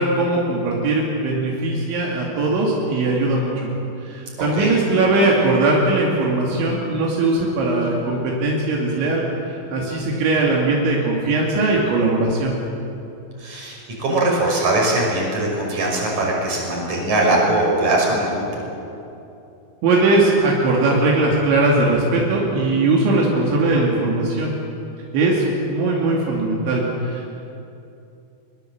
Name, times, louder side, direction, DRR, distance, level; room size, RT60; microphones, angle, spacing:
voice 1, 0.0-3.7 4.1-12.5 19.8-24.5 25.1-27.3, right 2 dB, 75° right, -3 dB, 4.9 m, -20 dB
voice 2, 4.4-4.7 13.4-18.4, right 2 dB, 40° right, -2 dB, 6.8 m, -21 dB
24.0 x 22.5 x 7.8 m, 2.7 s
omnidirectional pair, 5.4 m